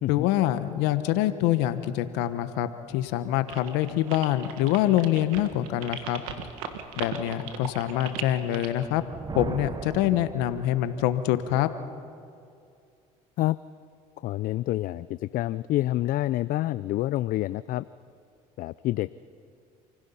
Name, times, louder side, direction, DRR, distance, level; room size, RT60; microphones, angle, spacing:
voice 1, 0.1-6.2 7.0-9.0 9.3-11.7, left 13 dB, 80° left, 11 dB, 1.0 m, -25 dB
sound 1, 3.5-8.9, right 8 dB, 90° right, 1.7 m, -38 dB
Thunder, 8.8-11.3, right 5 dB, 25° right, 0.8 m, -38 dB
voice 2, 14.2-17.8 18.6-19.1, left 15 dB, 55° left, 16 dB, 0.4 m, -27 dB
28.5 x 16.5 x 5.6 m, 2.4 s
supercardioid pair, 80°, 17 cm